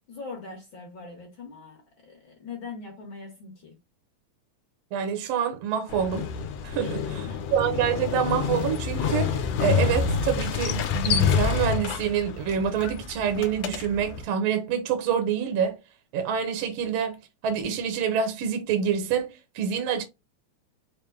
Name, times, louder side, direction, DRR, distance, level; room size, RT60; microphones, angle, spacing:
voice 1, 0.1-3.7 6.8-7.4, left 4 dB, 60° left, 1.4 m, -42 dB
voice 2, 4.9-6.3 6.6-7.2 7.5-15.8 16.1-17.2 17.4-20.0, right 8 dB, 70° right, 1.7 m, -26 dB
Motorcycle, 5.9-14.2, left 6 dB, 75° left, 1.5 m, -27 dB
5.2 x 2.2 x 3.5 m
omnidirectional pair, 3.4 m